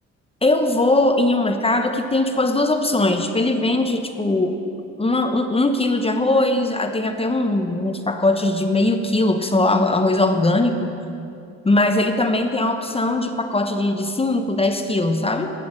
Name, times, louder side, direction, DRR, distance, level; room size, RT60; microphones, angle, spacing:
voice 1, 0.4-4.6 5.0-11.0 11.6-15.5, left 2 dB, 20° left, 6 dB, 0.8 m, -20 dB
11.0 x 6.9 x 7.6 m, 2.6 s
cardioid pair, 90°, 30 cm